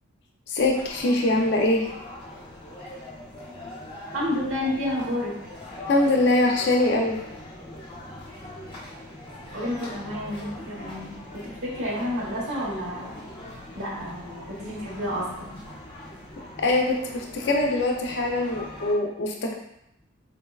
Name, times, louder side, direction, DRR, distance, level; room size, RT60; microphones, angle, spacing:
voice 1, 0.5-1.9 5.9-7.2 16.6-19.6, left 2 dB, 55° left, 1 dB, 0.5 m, -23 dB
sound 1, 0.7-18.9, left 1 dB, 25° left, 0.7 m, -41 dB
voice 2, 4.1-5.3 9.5-13.2 13.7-15.6, left 1 dB, 90° right, -6 dB, 1.2 m, -30 dB
3.8 x 2.2 x 2.3 m, 0.77 s
head